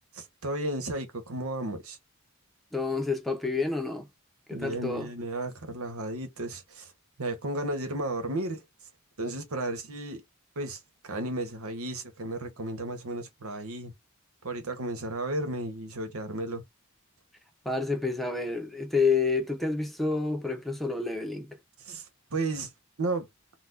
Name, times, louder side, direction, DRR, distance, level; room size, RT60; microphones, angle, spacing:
voice 1, 0.2-2.0 4.5-6.9 7.2-8.6 9.2-10.2 10.6-13.9 14.4-16.6 21.8-22.0 22.3-22.7 23.0-23.3, right 2 dB, 90° right, 1.1 m, -33 dB
voice 2, 2.7-4.1 4.5-5.1 17.6-21.6, left 4 dB, ahead, 0.7 m, -29 dB
4.1 x 2.3 x 2.5 m
head